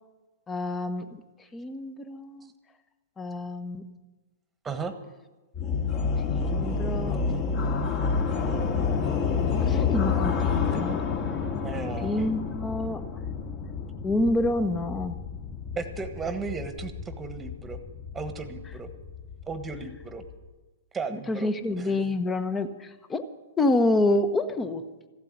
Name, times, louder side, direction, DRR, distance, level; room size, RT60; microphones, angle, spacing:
voice 1, 0.5-2.5 3.2-3.9 6.3-7.2 9.4-11.1 12.0-13.0 14.0-15.2 21.3-23.2 23.6-24.9, left 2 dB, 15° left, 10 dB, 1.0 m, -28 dB
sound 1, 5.5-20.4, left 5 dB, 35° left, 2.3 m, -29 dB
voice 2, 11.6-12.2 15.7-17.8 18.1-18.9 19.5-20.2 20.9-21.5 21.8-21.9, right 4 dB, 15° right, 9 dB, 1.4 m, -35 dB
15.0 x 8.2 x 9.5 m, 1.2 s
figure-of-eight pair, 115°, 0 cm